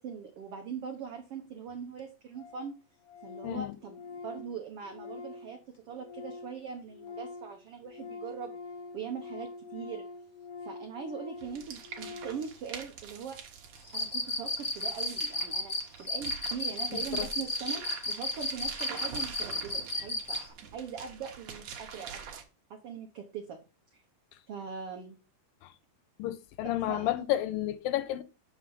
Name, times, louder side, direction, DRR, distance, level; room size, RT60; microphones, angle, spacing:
voice 1, 0.0-2.7 3.2-8.5 8.9-10.0 10.6-13.4 13.9-22.2 22.7-23.6 23.9-24.0 24.5-25.2 26.9-27.4, right 7 dB, 80° right, 1.3 m, -41 dB
Organ, 1.4-1.5 1.7-1.8 2.0-2.1 2.3-2.7 3.0-6.6 6.9-12.5, left 4 dB, 65° left, 2.2 m, -45 dB
voice 2, 3.4-3.8 16.9-17.3 26.2-28.2, left 13 dB, 80° left, 2.2 m, -31 dB
sound 1, 11.4-22.4, right 7 dB, 60° right, 2.0 m, -45 dB
Cricket, 13.9-20.5, left 1 dB, 40° left, 0.7 m, -32 dB
6.4 x 6.3 x 5.4 m
omnidirectional pair, 4.2 m